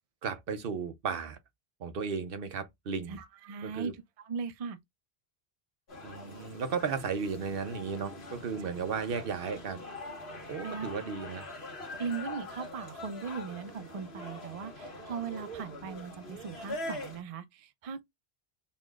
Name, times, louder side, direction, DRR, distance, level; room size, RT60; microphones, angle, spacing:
voice 1, 0.2-1.4 1.8-3.2 3.6-3.9 6.0-9.8 10.5-11.5, right 5 dB, 65° right, 0.9 m, -35 dB
voice 2, 3.1-3.9 4.2-4.8 10.6-10.9 12.0-18.0, right 6 dB, 50° right, 0.4 m, -38 dB
sound 1, 5.9-17.2, left 2 dB, 80° left, 1.7 m, -43 dB
4.2 x 3.0 x 2.3 m
omnidirectional pair, 1.1 m